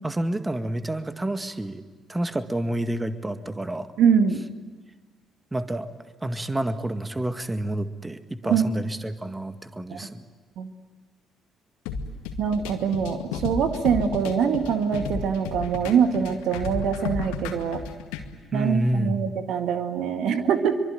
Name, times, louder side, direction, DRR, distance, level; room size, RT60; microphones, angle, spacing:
voice 1, 0.0-1.8 2.1-3.9 5.5-5.9 6.2-10.2 18.5-19.3, right 1 dB, 15° right, 9 dB, 1.9 m, -29 dB
voice 2, 4.0-4.4 8.4-8.6 9.9-10.0 10.6-10.7 12.4-17.8 18.5-20.8, right 7 dB, 60° right, 8 dB, 2.0 m, -24 dB
sound 1, 11.9-18.3, left 5 dB, 70° left, 2.0 m, -33 dB
24.5 x 24.0 x 9.3 m, 1.4 s
figure-of-eight pair, 45°, 0 cm